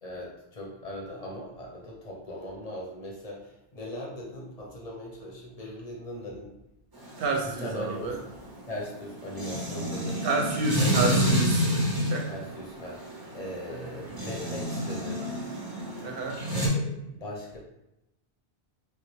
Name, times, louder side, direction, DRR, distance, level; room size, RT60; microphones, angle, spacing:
voice 1, 0.0-6.5 7.4-8.2 8.7-10.2 10.7-11.2 12.3-13.0 13.3-15.3 16.5-17.6, left 1 dB, 40° left, -2 dB, 0.7 m, -39 dB
sound 1, 6.9-16.7, equal, 25° right, 0.5 m, -29 dB
voice 2, 7.2-8.2 10.2-12.3 13.7-13.9 16.0-16.4, right 3 dB, 65° right, 1 dB, 0.8 m, -30 dB
3.2 x 2.2 x 3.0 m, 0.88 s
omnidirectional pair, 1.1 m